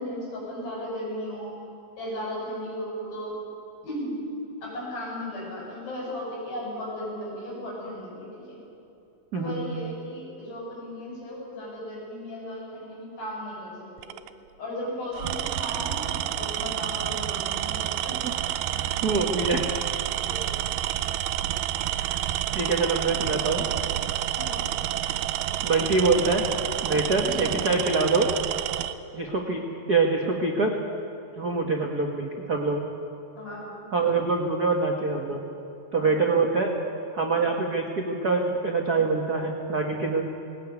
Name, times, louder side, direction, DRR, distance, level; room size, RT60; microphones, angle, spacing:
voice 1, 0.0-1.6 2.0-3.4 3.8-4.2 4.6-8.6 9.4-13.7 14.0-14.1 14.6-18.2 20.2-20.4 24.4-24.6 27.3-27.5 33.4-33.7 35.9-36.1, equal, 70° left, -3 dB, 8.4 m, -36 dB
voice 2, 9.3-9.6 18.2-18.3 18.7-19.7 22.1-22.2 22.5-23.6 25.6-26.4 26.8-28.3 29.1-30.7 31.4-32.8 33.9-35.4 35.9-36.7 37.1-40.2, right 3 dB, 60° right, 1 dB, 1.0 m, -25 dB
Tools, 14.0-14.3 15.1-29.0, right 12 dB, 80° right, 2.6 m, -29 dB
19.5 x 18.0 x 9.6 m, 2.7 s
omnidirectional pair, 4.3 m